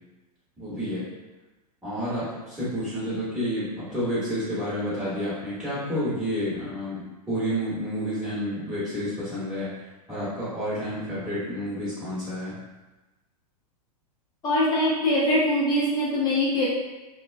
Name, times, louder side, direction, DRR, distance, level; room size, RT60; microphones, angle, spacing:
voice 1, 0.6-1.1 1.8-9.7 10.1-12.5, equal, 5° right, -13 dB, 1.0 m, -30 dB
voice 2, 14.4-16.7, left 1 dB, 20° left, -7 dB, 0.7 m, -22 dB
2.3 x 2.2 x 2.5 m, 1.1 s
figure-of-eight pair, 105°, 21 cm